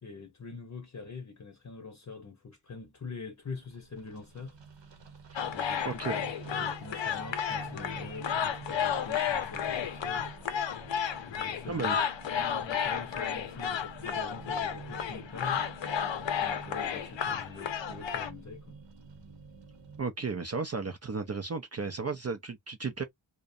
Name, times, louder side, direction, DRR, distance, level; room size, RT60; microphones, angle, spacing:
voice 1, 0.0-4.6 5.5-6.1 6.5-10.3 11.3-11.9 12.2-15.6 16.4-18.8, left 4 dB, 40° left, 0.7 m, -44 dB
sound 1, 3.4-20.0, right 5 dB, 75° right, 0.9 m, -49 dB
sound 2, 5.4-18.3, left 8 dB, 80° left, 0.6 m, -32 dB
voice 2, 5.8-6.2 11.7-12.0 20.0-23.0, right 4 dB, 35° right, 0.5 m, -34 dB
2.4 x 2.1 x 2.6 m
cardioid pair, 45°, 44 cm